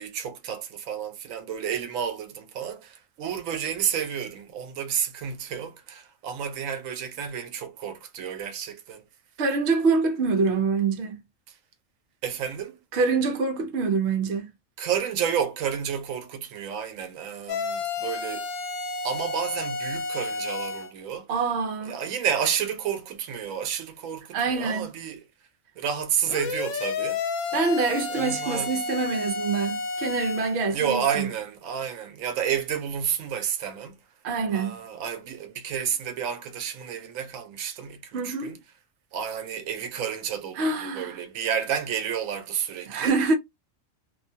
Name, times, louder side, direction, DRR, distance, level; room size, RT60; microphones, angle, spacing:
voice 1, 0.0-9.0 11.5-11.6 12.2-12.8 14.8-18.5 19.0-21.3 21.8-25.2 25.8-27.2 28.1-28.7 30.7-34.0 34.5-38.6 39.1-43.1, right 8 dB, 85° right, 1.0 m, -31 dB
voice 2, 9.4-11.2 12.9-14.5 21.3-22.0 24.3-24.9 27.5-31.3 34.2-34.8 38.1-38.6 40.6-41.2 42.9-43.4, right 4 dB, 60° right, 0.9 m, -25 dB
sound 1, 17.5-20.9 26.3-30.6, left 4 dB, 80° left, 1.0 m, -31 dB
2.6 x 2.1 x 2.7 m
omnidirectional pair, 1.3 m